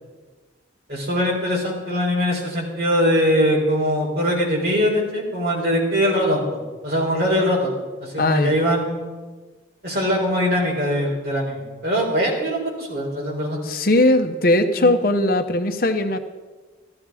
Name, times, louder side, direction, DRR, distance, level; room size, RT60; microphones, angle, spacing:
voice 1, 0.9-7.7 8.0-9.3 9.8-13.6 14.8-14.9, equal, 55° right, -2 dB, 4.0 m, -22 dB
voice 2, 8.2-8.5 13.6-16.2, left 1 dB, 50° left, 7 dB, 0.8 m, -19 dB
14.0 x 12.5 x 4.8 m, 1.3 s
head